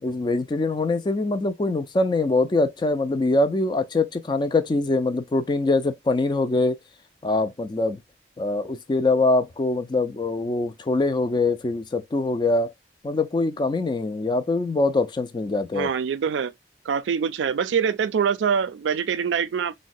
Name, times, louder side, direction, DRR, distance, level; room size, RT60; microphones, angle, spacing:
voice 1, 0.0-6.8 7.2-8.0 8.4-12.7 13.0-15.9, left 2 dB, 25° left, 0.3 m, -23 dB
voice 2, 15.7-16.5 16.9-19.7, right 7 dB, 90° right, 0.4 m, -24 dB
3.8 x 2.1 x 2.5 m
head